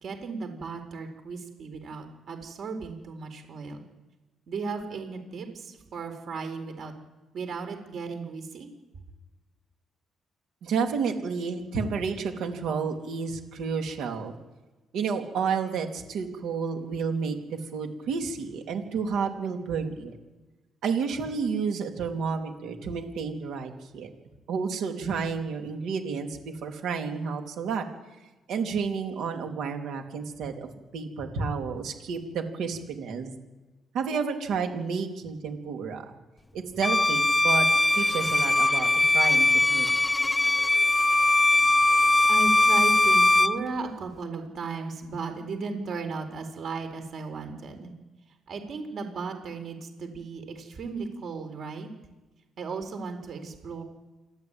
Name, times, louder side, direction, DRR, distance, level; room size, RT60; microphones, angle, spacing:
voice 1, 0.0-3.8 4.5-6.9 7.3-8.7 42.3-47.9 48.5-51.9 52.6-53.8, right 4 dB, 60° right, 6 dB, 4.3 m, -35 dB
voice 2, 10.6-14.3 14.9-20.2 20.8-24.1 24.5-27.9 28.5-30.7 30.9-33.3 33.9-36.1 36.5-37.7 37.9-38.9 39.1-39.9, right 5 dB, 80° right, 3 dB, 3.4 m, -31 dB
Bowed string instrument, 36.8-43.6, left 2 dB, 15° left, 0.6 m, -21 dB
27.5 x 11.5 x 9.0 m, 1.2 s
cardioid pair, 90°, 0 cm